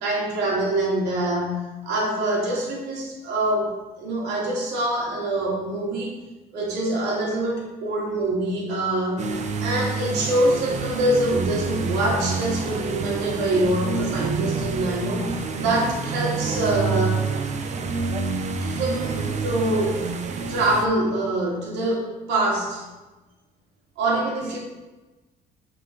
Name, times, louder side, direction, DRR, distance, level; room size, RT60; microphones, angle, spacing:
voice 1, 0.0-6.1 6.5-9.2 9.6-17.2 18.6-20.0 20.5-22.8 24.0-24.6, right 1 dB, 90° right, -3 dB, 2.6 m, -25 dB
sound 1, 9.2-20.9, right 4 dB, 45° right, 0.9 m, -28 dB
9.1 x 4.9 x 4.2 m, 1.1 s
cardioid pair, 110°, 17 cm